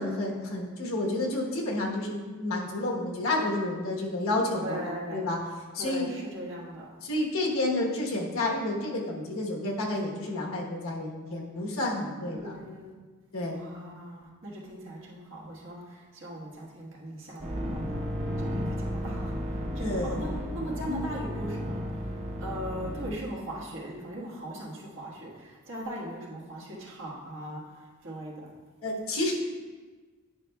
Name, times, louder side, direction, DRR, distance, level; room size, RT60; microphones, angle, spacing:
voice 1, 0.0-5.4 5.7-6.1 7.0-12.6 13.3-13.6 19.8-20.2 20.8-21.2 28.8-29.3, left 2 dB, 80° left, -1 dB, 1.1 m, -30 dB
voice 2, 4.6-5.2 5.8-6.9 12.3-12.9 13.5-18.1 18.5-19.3 19.7-21.8 22.4-27.6 28.0-28.5, equal, 65° right, -4 dB, 1.5 m, -39 dB
sound 1, 17.4-23.1, equal, 35° right, 0.8 m, -33 dB
9.5 x 5.4 x 2.3 m, 1.4 s
head